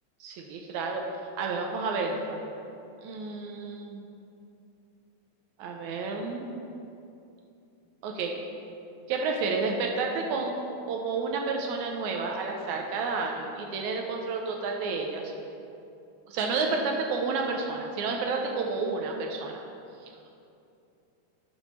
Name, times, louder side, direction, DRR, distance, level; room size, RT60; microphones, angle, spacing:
voice 1, 0.2-1.0 1.4-2.4 3.0-4.1 5.6-6.5 8.0-8.3 9.1-15.3 16.3-19.6, right 4 dB, 80° right, 1 dB, 1.9 m, -30 dB
9.0 x 3.6 x 6.0 m, 2.7 s
omnidirectional pair, 3.4 m